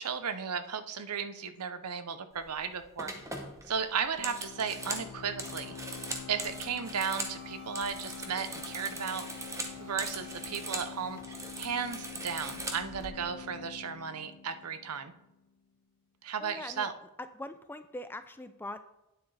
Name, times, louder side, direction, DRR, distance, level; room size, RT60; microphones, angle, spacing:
voice 1, 0.0-3.1 3.7-5.9 6.3-9.3 9.8-15.1 16.2-16.9, right 6 dB, 90° right, 10 dB, 0.7 m, -35 dB
sound 1, 2.4-2.6 3.0-7.4 7.7-10.9 11.2-13.1, right 2 dB, 15° right, 0.9 m, -40 dB
sound 2, 4.2-15.6, left 7 dB, 80° left, 0.5 m, -46 dB
sound 3, 6.5-11.9, right 1 dB, 65° right, 2.4 m, -58 dB
voice 2, 16.4-16.9 17.2-18.8, left 1 dB, 10° left, 10 dB, 0.3 m, -42 dB
9.4 x 7.3 x 3.3 m, 0.92 s
head